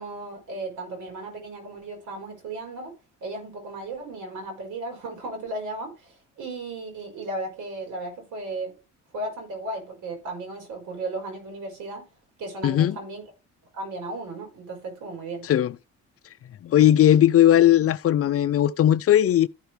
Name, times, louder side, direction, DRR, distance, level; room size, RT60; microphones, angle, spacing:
voice 1, 0.0-2.9 3.2-8.8 9.1-12.1 12.4-13.2 13.7-15.5, right 2 dB, 85° right, 4.7 m, -35 dB
voice 2, 12.6-13.0 15.5-15.7 16.6-19.5, left 11 dB, 50° left, 0.5 m, -18 dB
13.5 x 5.9 x 3.4 m
cardioid pair, 90°, 30 cm